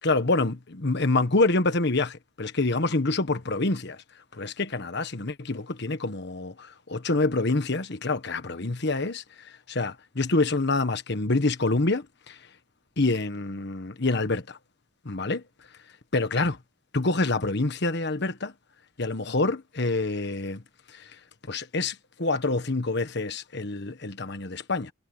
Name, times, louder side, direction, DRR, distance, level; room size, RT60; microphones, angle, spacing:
voice 1, 0.0-4.0 4.3-12.4 13.0-14.6 15.0-15.4 16.1-16.5 16.9-18.5 19.0-20.6 20.9-21.1 21.5-24.9, left 2 dB, 60° left, 1.4 m, -26 dB
head